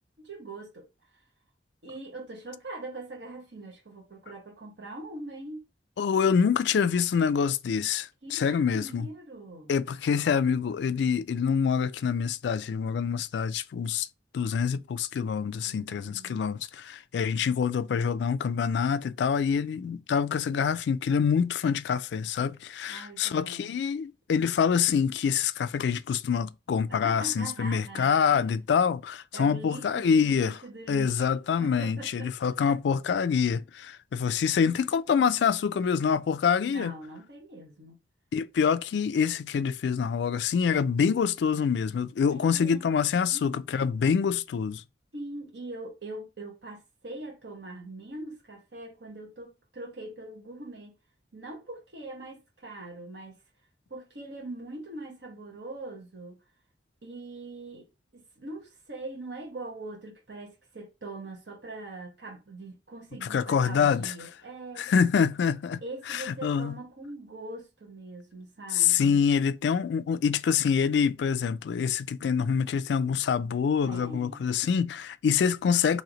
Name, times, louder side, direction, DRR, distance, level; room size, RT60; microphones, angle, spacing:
voice 1, 0.2-0.9 1.8-5.7 8.2-9.8 15.6-16.4 22.9-23.7 26.9-28.5 29.3-31.3 31.6-32.8 36.7-38.0 42.3-42.8 43.3-43.6 45.1-50.9 51.3-53.4 53.9-56.4 57.0-57.9 58.1-64.9 65.8-69.2 73.8-74.5, right 2 dB, 75° right, 1.1 m, -42 dB
voice 2, 6.0-9.1 9.7-14.1 14.3-30.6 30.9-36.9 38.3-44.8 63.2-64.1 64.8-66.8 68.7-76.0, left 6 dB, 75° left, 0.3 m, -26 dB
3.2 x 2.7 x 3.8 m
head